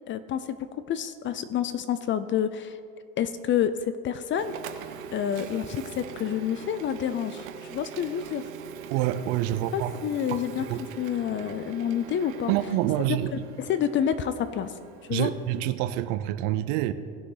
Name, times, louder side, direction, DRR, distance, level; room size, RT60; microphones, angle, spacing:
voice 1, 0.1-2.8 3.2-4.5 5.1-8.4 9.7-10.7 11.0-12.5 13.1-14.7 15.1-15.3, left 9 dB, 30° left, 13 dB, 0.4 m, -28 dB
Printer, 4.4-15.6, right 7 dB, 90° right, 1.0 m, -42 dB
voice 2, 8.9-9.9 10.7-10.8 12.5-13.3 15.1-16.9, right 13 dB, 65° right, 13 dB, 0.7 m, -26 dB
18.0 x 6.2 x 3.9 m, 2.3 s
supercardioid pair, 120°, 39 cm